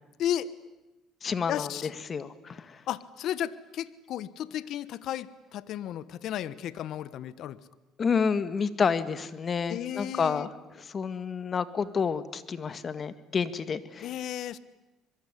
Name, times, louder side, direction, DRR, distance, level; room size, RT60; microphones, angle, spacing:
voice 1, 0.2-0.5 1.5-1.9 2.9-7.6 9.7-10.5 14.0-14.6, left 11 dB, 65° left, 17 dB, 1.2 m, -34 dB
voice 2, 1.2-2.8 7.2-7.3 8.0-14.1, left 6 dB, 40° left, 13 dB, 1.9 m, -30 dB
25.0 x 22.5 x 10.0 m, 1.0 s
supercardioid pair, 90°, 0 cm